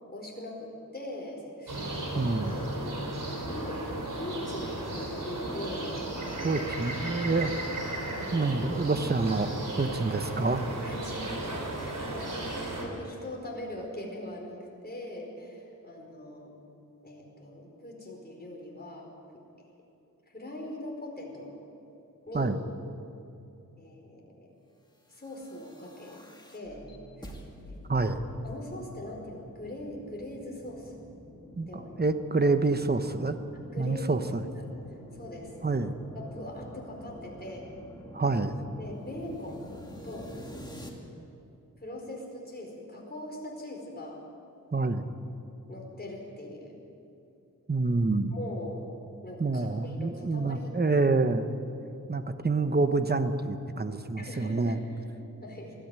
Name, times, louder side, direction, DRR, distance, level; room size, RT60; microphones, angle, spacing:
voice 1, 0.1-3.0 3.3-6.1 6.5-6.7 8.2-8.4 10.8-14.6 14.8-16.5 17.0-19.1 20.3-21.6 22.3-22.6 23.8-24.5 25.1-26.2 26.5-26.8 27.2-27.3 27.6-27.8 28.4-30.9 31.7-32.0 33.7-34.7 35.1-35.5 36.1-37.7 38.8-39.7 40.0-40.3 41.8-44.2 45.7-46.8 48.3-48.8 49.2-50.7 54.2-54.8 55.1-55.7, left 1 dB, 30° left, -1 dB, 4.8 m, -41 dB
sound 1, 1.7-12.9, right 2 dB, 70° right, 3.9 m, -35 dB
voice 2, 2.2-2.6 6.4-7.5 8.3-9.5 9.8-10.7 22.3-22.6 27.9-28.2 31.6-33.4 33.8-34.4 35.6-35.9 38.1-38.5 44.7-45.0 47.7-48.3 49.4-51.5 52.1-54.8, right 3 dB, 30° right, 9 dB, 1.1 m, -27 dB
sound 2, 25.1-40.9, equal, 15° left, 2.5 m, -48 dB
20.5 x 14.0 x 9.1 m, 2.7 s
wide cardioid pair, 95°, 33 cm